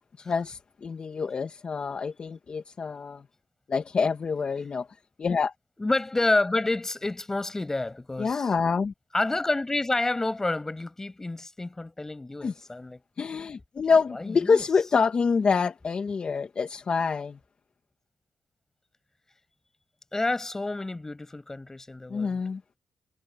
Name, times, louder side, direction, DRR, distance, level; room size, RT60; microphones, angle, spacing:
voice 1, 0.2-3.2 3.7-4.9 5.2-5.5 8.2-8.9 12.4-12.5 13.2-17.4 22.1-22.6, left 5 dB, 45° left, 1.6 m, -26 dB
voice 2, 5.8-8.5 9.1-13.0 14.1-14.7 20.1-22.4, left 2 dB, 20° left, 6.6 m, -29 dB
cardioid pair, 95°, 3 cm